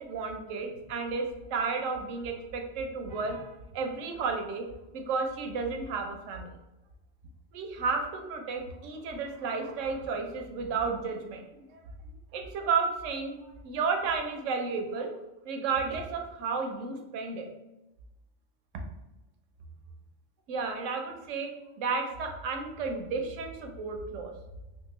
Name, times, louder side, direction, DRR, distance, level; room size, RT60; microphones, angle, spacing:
voice 1, 0.0-4.6 4.9-6.5 7.5-11.4 11.7-11.8 12.3-15.1 15.5-17.5 20.5-21.5 21.8-24.3, right 4 dB, 80° right, 3 dB, 1.0 m, -32 dB
3.5 x 2.4 x 3.0 m, 0.96 s
omnidirectional pair, 1.3 m